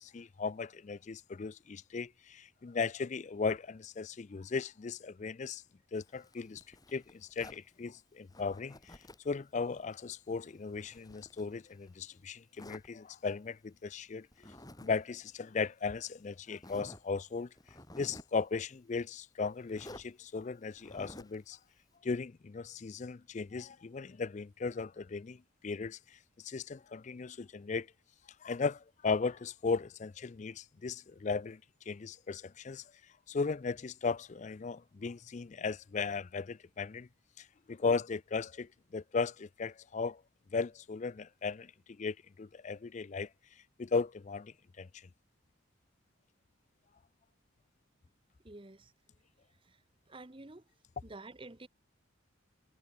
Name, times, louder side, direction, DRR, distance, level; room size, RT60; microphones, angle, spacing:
voice 1, 0.0-5.6 5.9-14.3 14.8-17.5 18.0-21.6 22.0-27.9 28.4-31.6 31.9-37.1 37.4-40.2 40.5-41.7 42.0-45.1, left 4 dB, 35° left, 0.4 m, -37 dB
Zipper (clothing), 6.0-7.7 8.3-9.3 9.7-12.0 12.6-12.9 14.3-14.9 15.2-15.3 16.0-16.1 16.6-17.1 17.6-18.4 19.7-20.1 20.8-21.4, left 1 dB, 20° left, 4.5 m, -52 dB
voice 2, 48.4-48.9 49.6-49.8 50.1-50.6 51.0-51.7, right 2 dB, 25° right, 0.9 m, -49 dB
head